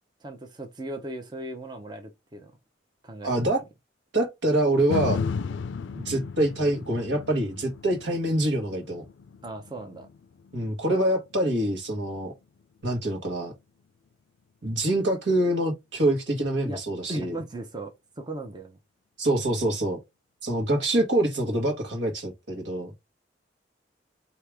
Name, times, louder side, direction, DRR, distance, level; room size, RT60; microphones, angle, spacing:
voice 1, 0.2-2.5 3.0-3.5 9.4-10.1 16.6-16.8 17.1-18.8, right 1 dB, 25° right, 0.6 m, -37 dB
voice 2, 3.2-3.6 4.1-5.2 6.0-9.0 10.5-12.3 12.8-13.5 14.6-17.4 19.2-20.0 20.4-22.9, right 1 dB, 75° right, 1.5 m, -25 dB
sound 1, 4.9-13.1 13.5-13.6, left 5 dB, 80° left, 0.4 m, -36 dB
4.8 x 2.8 x 3.5 m
head